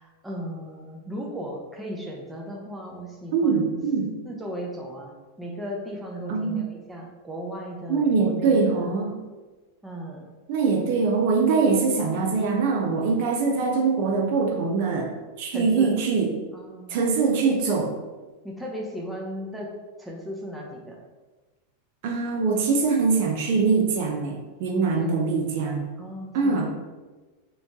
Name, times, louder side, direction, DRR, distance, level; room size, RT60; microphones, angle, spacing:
voice 1, 0.0-3.8 4.2-8.9 9.8-10.3 15.5-15.9 16.5-17.0 18.4-19.7 20.0-21.0 24.7-25.2 26.0-26.7, equal, 5° right, -1 dB, 0.8 m, -36 dB
voice 2, 3.3-4.1 6.3-6.6 7.9-9.2 10.5-15.1 15.4-16.3 16.9-17.9 22.0-25.9 26.3-26.7, right 4 dB, 60° right, 2 dB, 0.7 m, -23 dB
3.7 x 3.1 x 3.5 m, 1.2 s
supercardioid pair, 125°, 0 cm